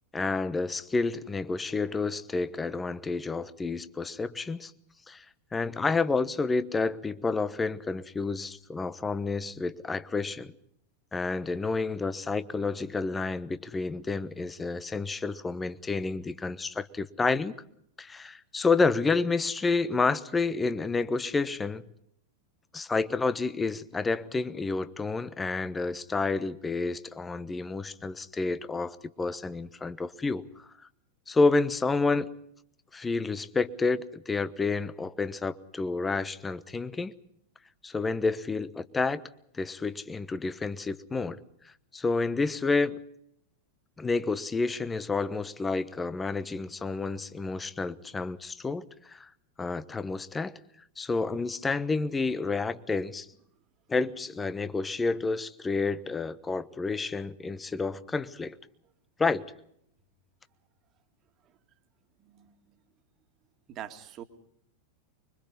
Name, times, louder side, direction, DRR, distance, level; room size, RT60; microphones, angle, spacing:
voice 1, 0.1-4.7 5.1-5.2 5.5-10.5 11.1-17.5 18.0-21.8 22.7-30.4 31.3-32.3 32.9-37.1 37.8-39.2 39.5-41.4 41.9-43.0 44.0-49.3 49.6-50.6 51.0-53.3 53.9-58.5 59.2-59.4, left 3 dB, 15° left, 1.1 m, -29 dB
voice 2, 63.7-64.2, right 11 dB, 30° right, 2.2 m, -42 dB
25.5 x 23.5 x 5.5 m
figure-of-eight pair, 90°, 0 cm